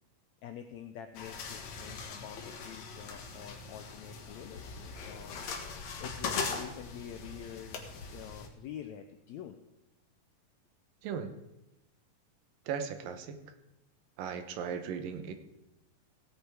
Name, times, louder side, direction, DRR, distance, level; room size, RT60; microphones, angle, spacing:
voice 1, 0.4-5.4 6.0-7.8 8.1-9.6, left 9 dB, 80° left, 7 dB, 1.6 m, -47 dB
sound 1, 1.2-8.5, left 4 dB, 60° left, 2.4 m, -40 dB
voice 2, 11.0-11.4 12.7-13.4 14.2-15.3, right 7 dB, 80° right, 8 dB, 2.7 m, -37 dB
17.0 x 8.3 x 4.7 m, 0.92 s
omnidirectional pair, 3.9 m